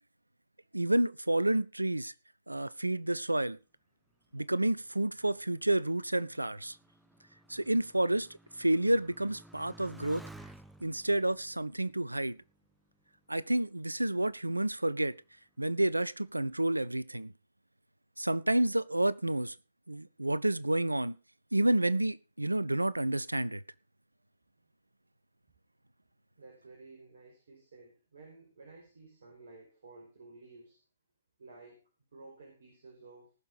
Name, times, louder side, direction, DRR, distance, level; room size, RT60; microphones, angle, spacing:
voice 1, 0.7-2.1 2.5-3.6 4.3-6.8 7.5-8.3 8.6-10.2 10.8-12.4 13.3-15.1 15.6-17.3 18.2-19.6 19.9-21.2 21.5-23.6, right 1 dB, 90° right, 0.6 m, -29 dB
Motorcycle, 4.3-13.3 14.0-14.6, right 1 dB, 5° right, 1.0 m, -55 dB
voice 2, 26.3-30.8 31.4-31.8 32.1-33.3, right 3 dB, 65° right, 5.1 m, -53 dB
19.0 x 6.7 x 5.0 m
figure-of-eight pair, 125°, 0 cm